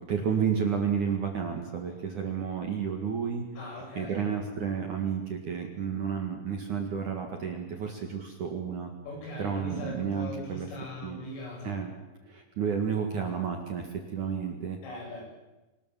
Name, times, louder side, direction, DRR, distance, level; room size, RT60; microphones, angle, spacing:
voice 1, 0.1-3.4 4.0-8.9 9.4-10.7 11.0-11.2 11.6-11.9 12.3-14.8, right 7 dB, 50° right, 3 dB, 2.6 m, -31 dB
voice 2, 3.6-4.3 9.1-11.7 14.8-15.3, left 1 dB, 80° left, -1 dB, 10.5 m, -40 dB
26.0 x 19.5 x 7.6 m, 1.1 s
omnidirectional pair, 5.8 m